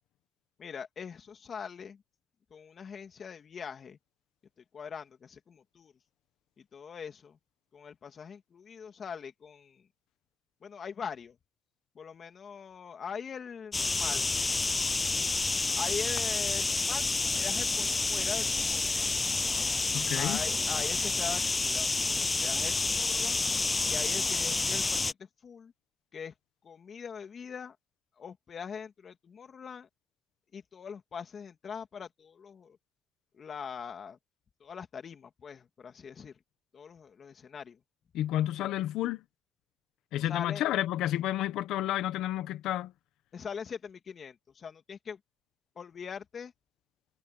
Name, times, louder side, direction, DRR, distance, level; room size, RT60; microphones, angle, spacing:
voice 1, 0.6-2.0 2.5-4.0 4.7-5.9 6.6-7.4 7.7-9.9 10.6-11.4 11.9-14.3 15.8-19.1 20.1-23.4 23.8-25.7 26.1-26.3 26.6-27.8 28.2-29.9 30.5-32.8 33.3-34.2 34.6-36.3 36.7-37.8 40.2-40.6 43.3-45.2 45.8-46.5, left 6 dB, 50° left, 2.8 m, -42 dB
sound 1, 13.7-25.1, left 3 dB, 25° left, 0.6 m, -29 dB
voice 2, 19.9-20.4 38.1-39.2 40.1-42.9, left 13 dB, 90° left, 1.2 m, -30 dB
cardioid pair, 90°, 0 cm